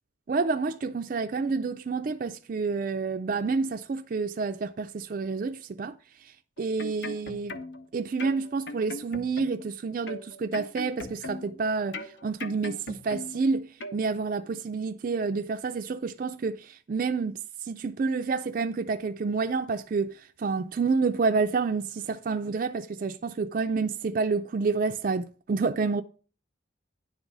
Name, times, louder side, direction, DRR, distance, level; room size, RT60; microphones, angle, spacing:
voice 1, 0.3-5.9 6.6-7.6 7.9-26.0, right 4 dB, 45° right, 0.4 m, -29 dB
sound 1, 6.6-7.9 8.2-9.7 10.1-11.6 11.9-13.5 13.8-14.0, left 2 dB, 60° left, 0.9 m, -39 dB
10.0 x 3.9 x 6.0 m
head